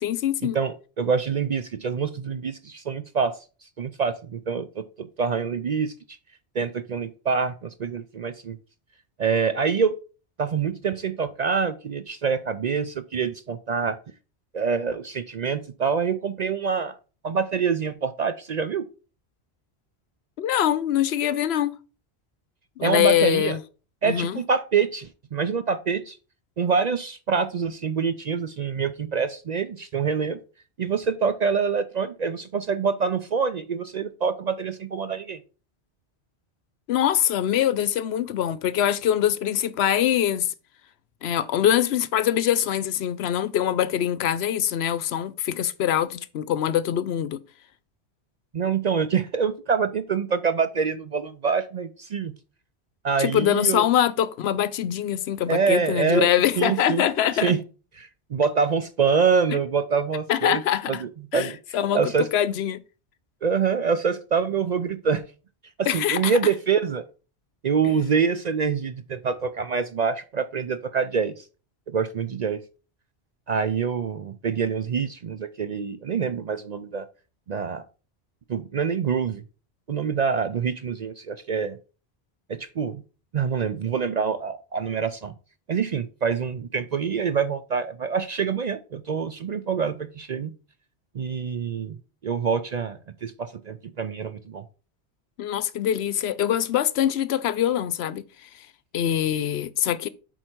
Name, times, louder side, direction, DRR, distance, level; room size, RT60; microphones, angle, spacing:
voice 1, 0.0-0.6 20.4-21.7 22.8-23.6 24.0-24.4 36.9-40.5 41.2-47.4 53.2-57.5 60.3-61.0 61.3-62.8 65.9-66.4 95.4-98.7 98.9-100.1, left 10 dB, 75° left, 0.8 m, -23 dB
voice 2, 0.5-3.4 3.8-5.9 6.5-8.6 9.2-9.9 10.4-14.0 14.5-17.0 17.2-18.8 22.8-23.6 24.0-26.2 26.6-30.4 30.8-35.4 48.5-52.3 53.0-53.9 55.5-56.3 56.6-57.0 57.3-57.6 58.0-60.6 60.9-62.3 63.4-65.2 65.8-67.0 67.6-71.5 71.9-72.6 73.5-77.1 77.5-77.8 78.5-79.4 79.9-81.8 82.5-83.0 83.3-85.3 85.7-90.5 91.1-92.0 92.2-94.6, right 6 dB, 55° right, 0.5 m, -26 dB
7.8 x 4.5 x 4.5 m
omnidirectional pair, 1.1 m